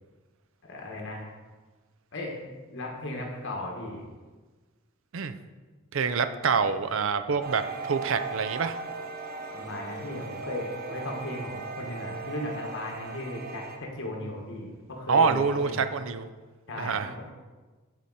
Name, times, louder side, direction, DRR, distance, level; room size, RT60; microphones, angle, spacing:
voice 1, 0.6-1.3 2.1-4.1 9.5-15.9 16.7-17.3, left 1 dB, 60° left, 0 dB, 1.7 m, -36 dB
voice 2, 5.9-8.8 15.1-16.3 16.8-17.1, right 5 dB, 65° right, 11 dB, 0.5 m, -26 dB
sound 1, 7.4-13.8, right 4 dB, 45° right, 0.9 m, -38 dB
12.0 x 4.9 x 4.2 m, 1.3 s
head